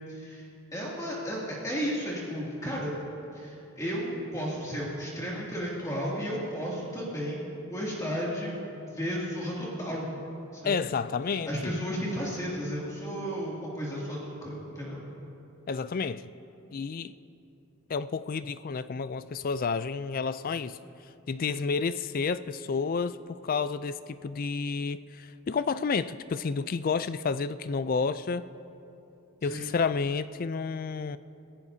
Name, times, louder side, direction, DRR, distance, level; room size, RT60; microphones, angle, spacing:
voice 1, 0.1-0.4 0.7-2.9 3.3-10.1 10.5-10.7 11.5-15.1 21.4-21.6 29.4-29.7, equal, 15° left, -6 dB, 2.5 m, -33 dB
voice 2, 10.6-11.8 15.7-16.2 16.7-17.1 17.9-20.8 21.3-28.5 29.4-31.2, left 5 dB, 40° left, 14 dB, 0.3 m, -30 dB
27.0 x 15.5 x 2.8 m, 2.9 s
head